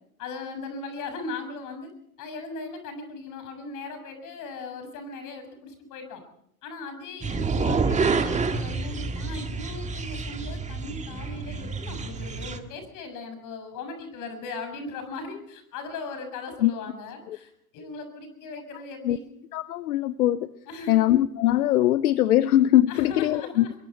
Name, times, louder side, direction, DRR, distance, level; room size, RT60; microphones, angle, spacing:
voice 1, 0.2-1.9 2.2-6.2 6.6-19.3 20.7-21.2 22.9-23.7, left 3 dB, 40° left, 7 dB, 7.0 m, -38 dB
sound 1, 7.2-12.6, right 4 dB, 15° right, 1.7 m, -28 dB
voice 2, 19.5-20.5 20.9-23.6, left 13 dB, 70° left, 16 dB, 0.9 m, -21 dB
25.5 x 22.5 x 4.6 m, 0.71 s
hypercardioid pair, 95°, 46 cm